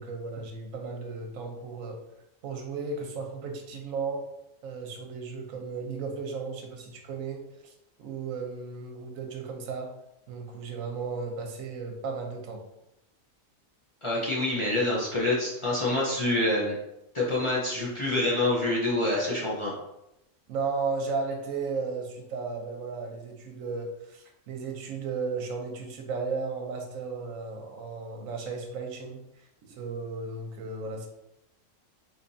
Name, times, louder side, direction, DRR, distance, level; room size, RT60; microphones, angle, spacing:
voice 1, 0.0-2.0 2.4-4.2 4.6-7.7 8.0-9.9 10.3-12.6 20.5-29.2 29.7-31.1, right 4 dB, 80° right, 2 dB, 1.1 m, -35 dB
voice 2, 14.0-16.7 17.1-19.7, left 2 dB, 30° left, -6 dB, 0.6 m, -26 dB
4.3 x 2.8 x 2.6 m, 0.87 s
omnidirectional pair, 1.4 m